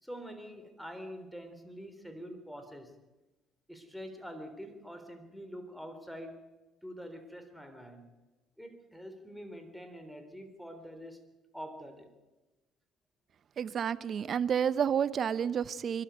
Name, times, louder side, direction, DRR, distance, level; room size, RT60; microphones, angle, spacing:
voice 1, 0.0-2.9 3.7-6.4 6.8-8.1 8.6-11.2 11.5-12.1, equal, ahead, 8 dB, 3.7 m, -45 dB
voice 2, 13.6-16.0, right 8 dB, 55° right, 16 dB, 0.8 m, -30 dB
24.0 x 12.5 x 9.3 m, 1.1 s
supercardioid pair, 70°, 0 cm